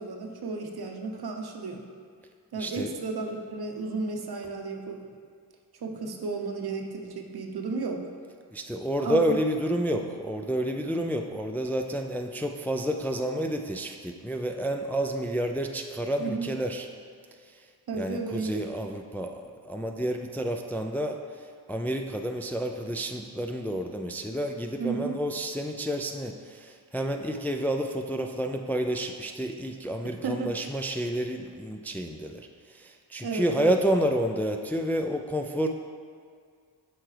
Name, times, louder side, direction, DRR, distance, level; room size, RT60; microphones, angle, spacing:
voice 1, 0.0-1.8 2.5-5.1 5.8-8.0 9.0-9.4 16.2-16.5 17.9-18.6 24.8-25.2 30.2-30.7 33.2-33.7, right 4 dB, 60° right, 3 dB, 0.8 m, -33 dB
voice 2, 2.6-2.9 8.5-16.9 18.0-21.2 21.7-32.5 32.7-35.7, right 1 dB, 5° left, 4 dB, 0.3 m, -29 dB
7.7 x 4.6 x 3.2 m, 2.1 s
cardioid pair, 45°, 42 cm